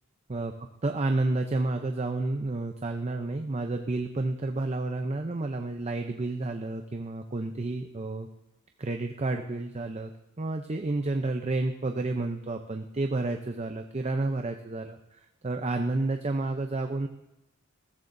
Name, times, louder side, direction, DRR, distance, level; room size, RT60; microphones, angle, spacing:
voice 1, 0.3-8.3 8.8-10.1 10.4-17.1, right 2 dB, 30° right, 5 dB, 0.5 m, -30 dB
21.0 x 14.5 x 2.6 m, 0.91 s
head